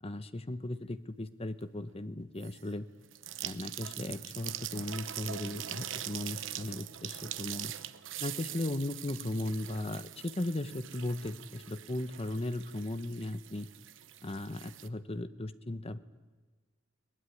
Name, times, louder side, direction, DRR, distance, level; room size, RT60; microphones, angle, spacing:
voice 1, 0.0-2.9 3.4-7.7 8.2-13.7 14.2-16.0, left 1 dB, 30° left, 12 dB, 1.0 m, -37 dB
sound 1, 2.4-2.7 3.1-14.9, right 12 dB, 70° right, 0.9 m, -43 dB
21.5 x 20.0 x 9.5 m, 1.3 s
head